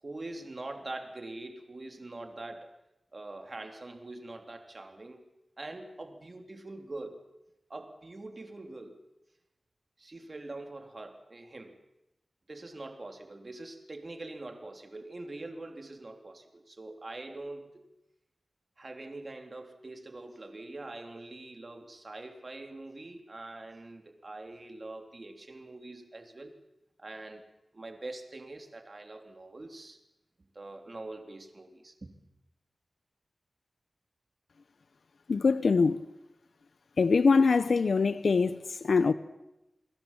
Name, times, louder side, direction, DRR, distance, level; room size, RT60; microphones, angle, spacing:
voice 1, 0.0-2.7 3.1-5.2 5.6-7.3 7.7-9.0 10.0-11.8 12.5-17.8 18.8-26.6 27.0-27.4 27.7-30.0 30.5-32.1, right 2 dB, 40° right, 3.3 m, -44 dB
voice 2, 35.3-36.0 37.0-39.1, left 4 dB, 80° left, 0.9 m, -23 dB
29.5 x 21.0 x 7.4 m
wide cardioid pair, 100°, 0 cm